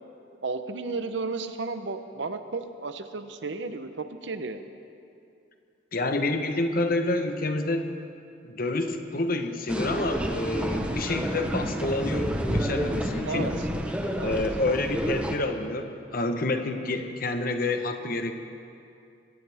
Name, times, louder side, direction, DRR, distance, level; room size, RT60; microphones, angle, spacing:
voice 1, 0.4-4.6 13.2-13.5 14.2-14.4, right 3 dB, 70° right, 9 dB, 0.9 m, -33 dB
voice 2, 5.9-7.9 8.4-13.5 14.2-18.3, left 2 dB, 50° left, 6 dB, 1.1 m, -28 dB
sound 1, 9.7-15.4, equal, 5° right, 1.0 m, -29 dB
22.5 x 18.0 x 3.6 m, 2.5 s
head